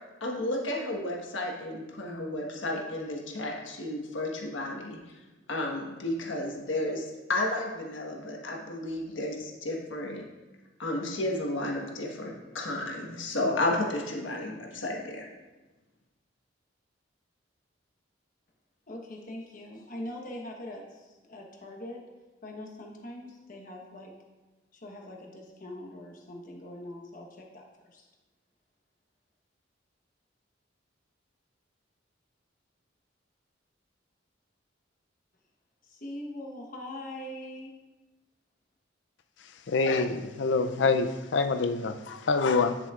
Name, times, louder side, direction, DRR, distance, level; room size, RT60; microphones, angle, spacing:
voice 1, 0.2-5.0 5.5-10.2 10.8-15.3, left 1 dB, 90° left, 0 dB, 1.4 m, -32 dB
voice 2, 18.9-22.1 22.4-24.1 24.7-28.1 35.8-37.7, left 1 dB, 45° left, 0 dB, 1.1 m, -42 dB
voice 3, 39.7-42.8, left 4 dB, 65° left, 9 dB, 0.5 m, -26 dB
10.5 x 6.8 x 2.4 m, 1.2 s
head